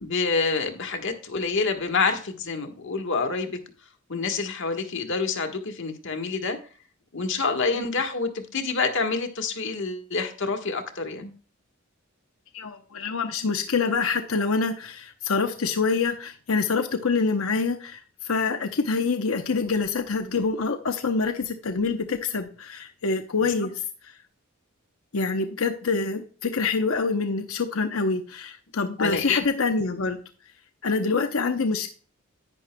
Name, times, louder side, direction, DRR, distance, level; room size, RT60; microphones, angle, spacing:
voice 1, 0.0-3.6 4.1-6.6 7.1-11.3 23.4-23.5 29.0-29.4, left 4 dB, 65° left, 6 dB, 1.4 m, -27 dB
voice 2, 12.5-24.1 25.1-30.2 30.8-31.9, left 4 dB, 85° left, 6 dB, 0.8 m, -26 dB
11.0 x 9.9 x 2.2 m, 0.40 s
head